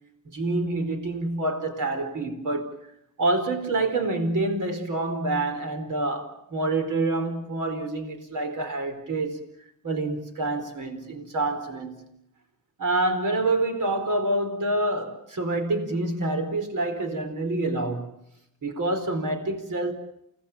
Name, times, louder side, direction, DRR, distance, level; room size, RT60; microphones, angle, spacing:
voice 1, 0.3-2.8 3.2-9.4 9.8-12.2 12.8-18.2 18.6-19.9, right 2 dB, 60° right, 4.6 m, -27 dB
29.0 x 19.0 x 8.6 m
cardioid pair, 80°, 35 cm